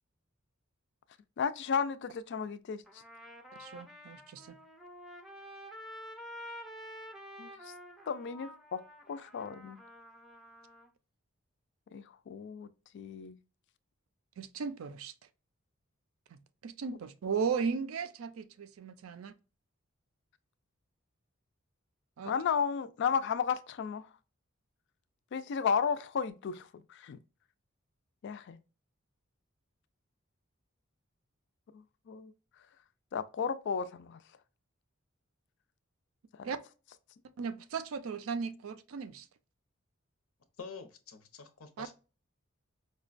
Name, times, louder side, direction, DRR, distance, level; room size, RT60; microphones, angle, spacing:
voice 1, 1.4-2.8 7.4-7.5 8.1-8.8 9.1-9.8 11.9-13.4 22.2-24.1 25.3-27.2 28.2-28.6 31.7-32.3 33.1-34.2 36.4-36.5, left 6 dB, 55° left, 0.3 m, -34 dB
Trumpet, 2.9-10.9, equal, ahead, 0.5 m, -49 dB
voice 2, 3.6-4.6 14.4-15.1 16.3-19.3 22.2-22.3 36.4-36.6 37.4-39.3 41.8-41.9, right 5 dB, 75° right, 0.4 m, -36 dB
voice 3, 40.6-41.9, left 5 dB, 90° left, 0.7 m, -47 dB
5.0 x 2.2 x 2.4 m
head